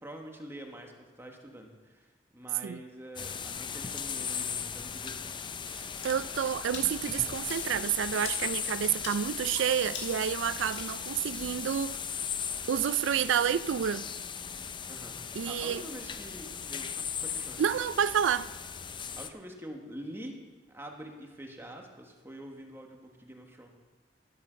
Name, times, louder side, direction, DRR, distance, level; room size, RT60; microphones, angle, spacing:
voice 1, 0.0-5.3 14.9-17.6 19.2-20.4 20.7-23.7, right 1 dB, 15° right, 1.4 m, -46 dB
sound 1, 3.2-19.3, left 7 dB, 25° left, 0.5 m, -38 dB
voice 2, 5.7-12.0 12.7-14.1 15.4-15.8 17.6-18.5, right 8 dB, 85° right, 0.4 m, -29 dB
Water / Splash splatter, 6.0-11.8, left 4 dB, 75° left, 2.0 m, -46 dB
12.5 x 8.4 x 6.3 m
head